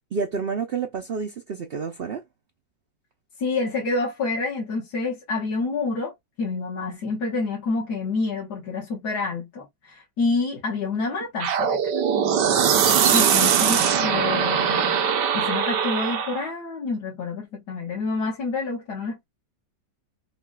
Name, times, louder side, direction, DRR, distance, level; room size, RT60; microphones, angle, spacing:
voice 1, 0.1-2.2, right 5 dB, 65° right, 0.6 m, -29 dB
voice 2, 3.4-6.1 6.4-11.8 13.1-15.0 15.3-19.3, left 3 dB, 70° left, 1.9 m, -28 dB
sound 1, 11.4-16.5, right 7 dB, 85° right, 1.5 m, -21 dB
5.9 x 2.4 x 2.3 m
omnidirectional pair, 1.8 m